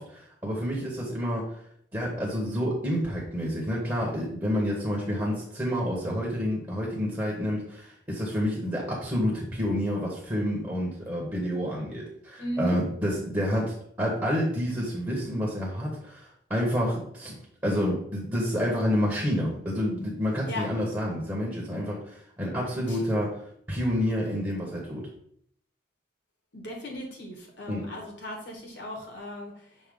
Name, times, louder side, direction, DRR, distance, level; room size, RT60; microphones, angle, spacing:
voice 1, 0.0-1.5 1.9-17.3 17.6-23.3 23.7-25.1 27.7-27.8, equal, 15° right, -4 dB, 1.2 m, -29 dB
voice 2, 12.4-12.8 20.5-20.6 22.9-23.0 26.5-29.5, left 1 dB, 65° left, 0 dB, 1.7 m, -36 dB
6.4 x 2.8 x 5.3 m, 0.67 s
head